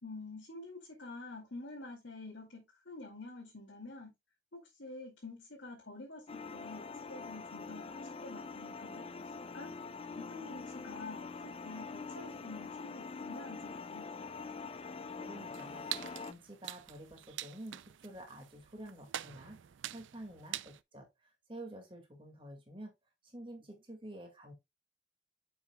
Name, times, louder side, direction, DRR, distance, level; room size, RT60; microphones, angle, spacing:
voice 1, 0.0-4.1 4.5-9.3 9.5-9.7 10.2-14.1, left 3 dB, 80° left, 2.4 m, -48 dB
sound 1, 6.3-16.3, left 4 dB, 30° left, 0.3 m, -44 dB
voice 2, 15.0-19.6 19.9-22.9 23.2-24.5, right 1 dB, 25° right, 2.0 m, -49 dB
sound 2, 15.5-20.8, right 13 dB, 85° right, 0.4 m, -45 dB
9.6 x 6.0 x 2.3 m
head